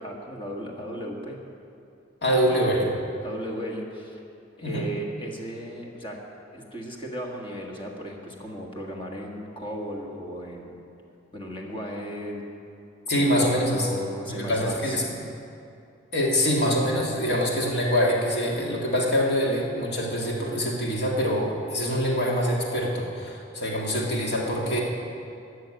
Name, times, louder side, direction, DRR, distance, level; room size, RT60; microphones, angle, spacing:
voice 1, 0.0-1.4 3.2-4.2 4.6-6.2 6.5-10.8 11.3-12.4 13.1-15.0, equal, 25° left, 0 dB, 1.6 m, -36 dB
voice 2, 2.2-2.9 4.6-4.9 13.1-14.0 14.3-15.0 16.1-24.8, equal, 60° left, -2 dB, 2.2 m, -24 dB
13.0 x 6.5 x 8.7 m, 2.6 s
head